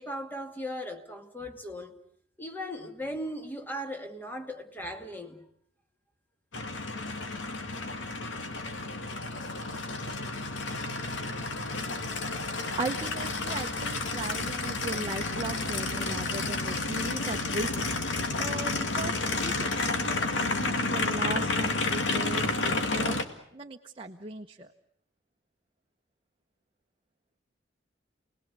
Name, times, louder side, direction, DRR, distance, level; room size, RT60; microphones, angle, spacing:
voice 1, 0.0-1.9 2.4-5.5, equal, 10° left, 2.3 m, -38 dB
Aircraft, 6.5-23.2, left 3 dB, 80° left, 2.2 m, -31 dB
voice 2, 12.4-17.8 18.4-23.2 23.5-24.7, right 2 dB, 30° right, 1.0 m, -37 dB
29.5 x 20.0 x 8.2 m
head